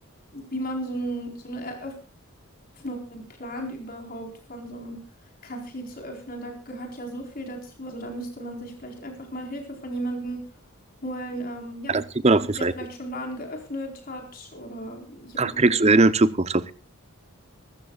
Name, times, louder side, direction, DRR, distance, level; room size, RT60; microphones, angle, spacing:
voice 1, 0.3-1.9 2.8-5.0 5.4-10.4 11.0-15.7, right 1 dB, 40° left, 2 dB, 4.4 m, -35 dB
voice 2, 11.9-12.7 15.4-16.7, right 3 dB, 30° right, 15 dB, 0.8 m, -20 dB
24.5 x 13.5 x 2.4 m, 0.36 s
head